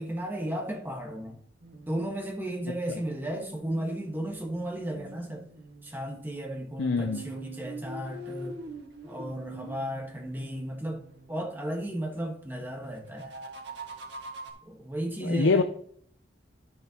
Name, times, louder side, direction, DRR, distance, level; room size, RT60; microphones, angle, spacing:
voice 1, 0.0-1.4 1.9-5.4 5.8-8.6 9.0-11.0 11.3-13.3 14.7-15.6, right 1 dB, 10° right, 1.4 m, -34 dB
sound 1, 1.6-5.9 6.9-11.8 13.0-14.5, right 2 dB, 70° right, 1.6 m, -44 dB
voice 2, 6.8-7.2 15.2-15.6, left 4 dB, 85° left, 0.5 m, -25 dB
12.0 x 6.4 x 2.9 m
head